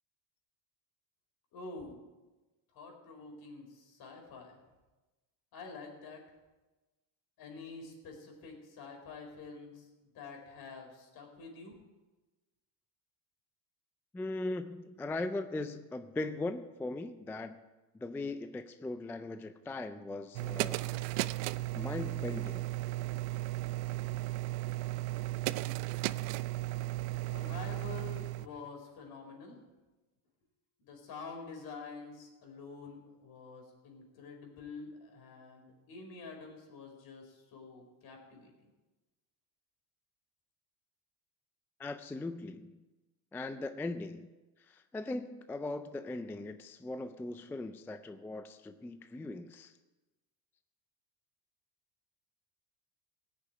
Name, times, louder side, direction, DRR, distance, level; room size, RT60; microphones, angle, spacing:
voice 1, 1.5-2.0 2.7-4.6 5.5-6.2 7.4-11.8 27.3-29.6 30.8-38.5, left 4 dB, 50° left, 2 dB, 4.5 m, -48 dB
voice 2, 14.1-17.6 17.9-20.8 21.2-21.5 21.7-22.7 41.8-42.8 43.3-44.3 44.7-49.7, left 2 dB, 5° left, 9 dB, 0.3 m, -39 dB
sound 1, 20.3-28.5, right 18 dB, 70° right, 0.6 m, -35 dB
16.5 x 6.8 x 9.3 m, 1.2 s
cardioid pair, 130°, 46 cm